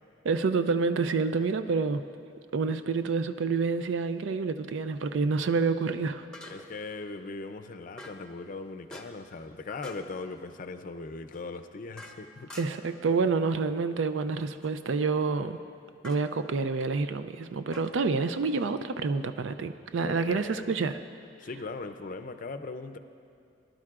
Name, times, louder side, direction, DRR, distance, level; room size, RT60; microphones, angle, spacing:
voice 1, 0.2-2.0 2.5-6.3 12.6-15.6 16.0-21.0, right 4 dB, 90° right, 10 dB, 0.4 m, -28 dB
sound 1, 2.6-2.8 6.3-6.9 8.0-8.3 8.9-9.3 9.8-10.1 11.3-13.0 14.4-14.8 16.0-16.3 17.7-18.7, left 1 dB, 5° left, 0.8 m, -48 dB
voice 2, 6.5-12.5 20.0-20.8 21.4-23.0, left 3 dB, 45° left, 8 dB, 0.5 m, -39 dB
20.5 x 12.0 x 2.4 m, 2.4 s
head